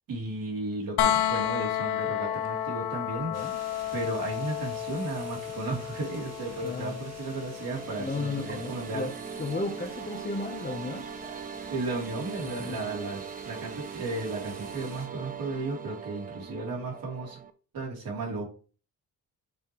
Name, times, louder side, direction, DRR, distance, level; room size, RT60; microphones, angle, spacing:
voice 1, 0.1-3.3 3.9-9.1 11.2-11.4 11.7-17.4 17.7-18.5, right 2 dB, 60° right, -2 dB, 3.2 m, -34 dB
sound 1, 1.0-12.8 14.7-14.8, left 10 dB, 80° left, 0.9 m, -33 dB
voice 2, 3.2-3.6 6.6-7.0 8.0-9.1 9.4-11.1 12.4-12.9, left 3 dB, 25° left, 5 dB, 0.9 m, -34 dB
sound 2, 3.3-15.1, right 3 dB, 40° right, 1.9 m, -49 dB
sound 3, 7.4-17.5, right 7 dB, 20° right, 0.6 m, -41 dB
7.0 x 5.2 x 3.1 m, 0.38 s
cardioid pair, 110°, 38 cm